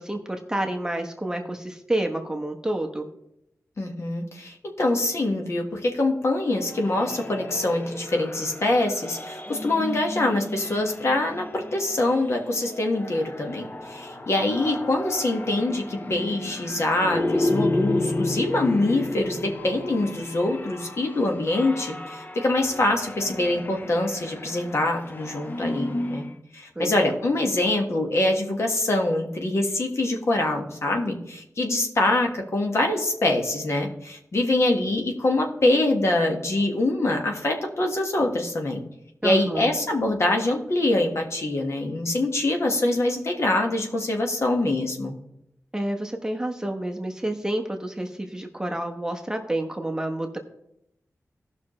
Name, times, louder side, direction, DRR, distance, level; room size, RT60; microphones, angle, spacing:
voice 1, 0.0-3.1 26.7-27.2 39.2-39.7 45.7-50.4, right 1 dB, 10° right, 3 dB, 1.1 m, -29 dB
voice 2, 3.8-26.3 26.5-38.8 39.2-45.1, left 2 dB, 55° left, 2 dB, 1.7 m, -24 dB
sound 1, 6.6-26.4, left 2 dB, 35° left, 0.8 m, -32 dB
17.0 x 5.9 x 3.2 m, 0.80 s
wide cardioid pair, 115°, 6 cm